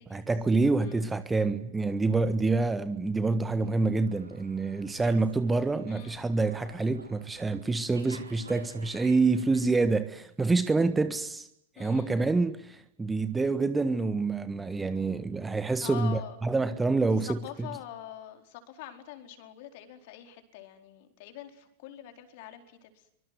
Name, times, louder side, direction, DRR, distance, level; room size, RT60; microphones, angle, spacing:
voice 1, 0.1-11.5 11.8-17.7, right 3 dB, 10° right, 1.6 m, -27 dB
Slam, 3.6-9.6, right 3 dB, 80° right, 3.6 m, -50 dB
voice 2, 5.9-6.3 11.8-12.1 15.8-16.4 17.1-23.1, left 11 dB, 50° left, 4.5 m, -45 dB
24.5 x 24.5 x 9.6 m
figure-of-eight pair, 90°, 0 cm